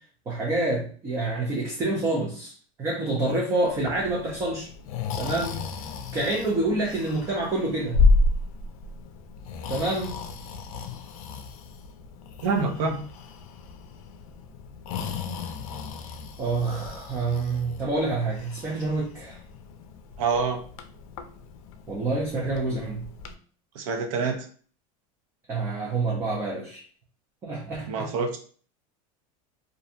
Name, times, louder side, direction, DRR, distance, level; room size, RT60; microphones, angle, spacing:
voice 1, 0.3-4.7 5.2-5.7 6.1-8.0 9.7-10.1 16.4-19.4 21.9-23.1 25.5-26.8 27.4-28.1, right 2 dB, 15° right, -2 dB, 0.4 m, -27 dB
Breathing, 3.7-23.3, left 3 dB, 80° left, 0.4 m, -31 dB
voice 2, 12.4-13.1 20.2-20.6 23.7-24.5 27.9-28.4, right 4 dB, 75° right, 4 dB, 0.6 m, -26 dB
2.4 x 2.1 x 2.7 m, 0.43 s
supercardioid pair, 165°, 18 cm